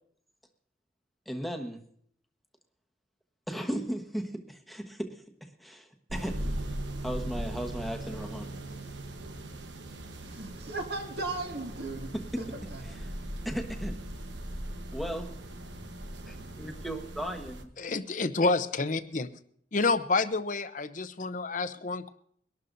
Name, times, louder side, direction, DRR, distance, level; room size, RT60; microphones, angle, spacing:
voice 1, 1.3-1.8 3.5-5.1 5.4-6.4 7.0-8.5 12.3-12.4 12.8-13.1 13.4-14.0 14.9-15.4 16.3-17.7, equal, ahead, 1.2 m, -36 dB
sound 1, 6.1-17.6, right 1 dB, 80° right, 1.1 m, -39 dB
voice 2, 10.2-12.8, right 2 dB, 60° right, 2.1 m, -37 dB
voice 3, 17.8-19.3 19.7-22.1, left 3 dB, 45° left, 0.7 m, -28 dB
23.5 x 12.0 x 2.7 m
head